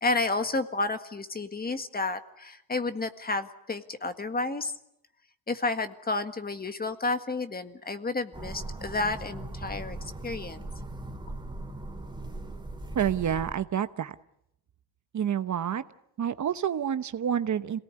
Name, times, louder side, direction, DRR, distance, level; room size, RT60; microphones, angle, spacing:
voice 1, 0.0-4.7 5.5-10.0 10.2-10.7, left 3 dB, 25° left, 9 dB, 1.7 m, -31 dB
sound 1, 8.3-13.5, right 2 dB, 10° right, 3.3 m, -39 dB
voice 2, 12.9-14.1 15.1-15.8 16.2-17.8, right 9 dB, 50° right, 12 dB, 1.0 m, -28 dB
27.5 x 18.5 x 9.6 m, 0.79 s
cardioid pair, 120°, 39 cm